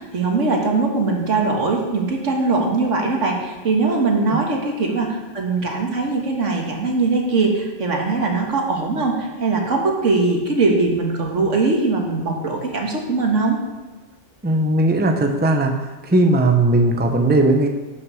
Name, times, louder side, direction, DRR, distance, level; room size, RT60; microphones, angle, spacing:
voice 1, 0.0-13.6, right 3 dB, 80° right, 1 dB, 2.0 m, -21 dB
voice 2, 14.4-15.7 16.0-17.7, right 2 dB, 10° right, 4 dB, 0.7 m, -17 dB
8.5 x 6.5 x 6.3 m, 1.2 s
omnidirectional pair, 1.2 m